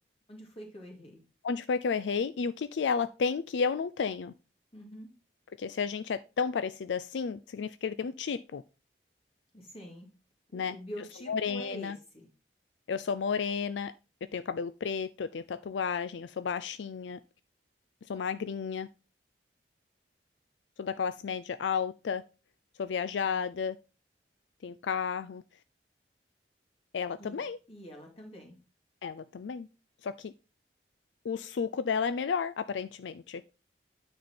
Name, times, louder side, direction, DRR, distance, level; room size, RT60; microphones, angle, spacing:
voice 1, 0.3-1.2 4.7-5.1 9.5-10.1 10.5-12.3 23.2-23.4 27.2-27.4 27.7-28.6, equal, 35° left, 2.5 m, -46 dB
voice 2, 1.4-4.3 5.6-8.6 10.5-10.8 11.3-12.0 12.9-13.9 14.3-17.2 18.1-18.9 20.8-22.2 22.8-23.8 24.6-25.4 26.9-27.6 29.0-29.7 30.0-30.3 31.2-33.4, left 6 dB, 80° left, 0.4 m, -32 dB
9.3 x 4.4 x 4.3 m
head